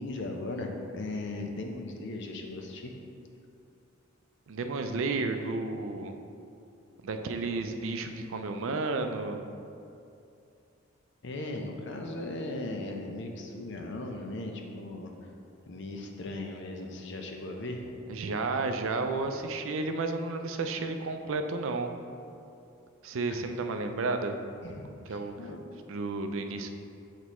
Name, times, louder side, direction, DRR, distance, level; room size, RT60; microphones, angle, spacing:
voice 1, 0.0-2.9 11.2-15.1 15.7-17.9 24.6-25.6, left 2 dB, 55° left, 2 dB, 0.6 m, -37 dB
voice 2, 4.5-6.2 7.0-9.4 18.1-21.9 23.0-24.4 24.9-25.3 25.9-26.7, right 3 dB, 65° right, 6 dB, 0.4 m, -32 dB
8.2 x 4.1 x 3.0 m, 2.6 s
head